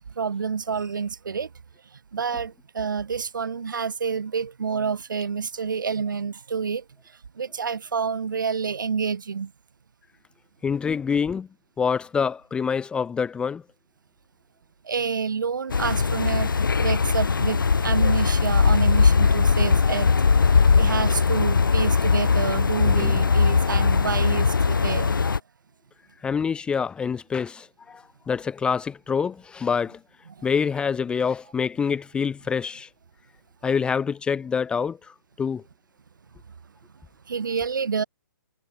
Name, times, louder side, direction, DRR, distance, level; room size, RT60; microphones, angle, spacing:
voice 1, 0.2-1.5 2.1-6.8 7.4-9.5 14.9-20.1 20.8-25.1 37.3-38.0, right 6 dB, 65° right, 3.5 m, -28 dB
voice 2, 10.6-11.5 11.8-13.6 22.8-23.3 26.2-30.0 30.4-32.9 33.6-35.6, left 6 dB, 10° left, 0.7 m, -26 dB
sound 1, 15.7-25.4, left 5 dB, 70° left, 1.5 m, -20 dB
figure-of-eight pair, 130°, 12 cm